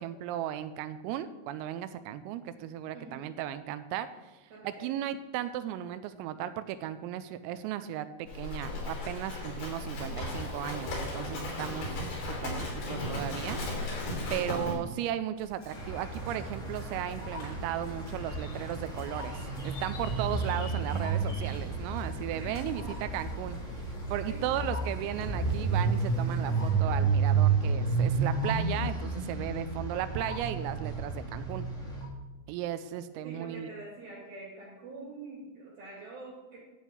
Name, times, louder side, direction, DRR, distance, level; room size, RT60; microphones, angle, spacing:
voice 1, 0.0-12.0 12.2-13.9 14.3-31.7 32.5-33.7, right 11 dB, 85° right, 12 dB, 3.2 m, -36 dB
voice 2, 2.9-3.3 4.5-4.9 22.3-23.1 24.3-24.4 33.2-36.6, right 3 dB, 60° right, -2 dB, 3.1 m, -46 dB
Livestock farm animals working animals, 8.3-14.7, left 1 dB, 60° left, 5.3 m, -35 dB
sound 1, 15.4-26.7, left 2 dB, 30° left, 3.4 m, -50 dB
sound 2, 15.7-32.0, right 4 dB, 5° left, 0.5 m, -31 dB
12.0 x 4.4 x 8.3 m, 1.1 s
omnidirectional pair, 6.0 m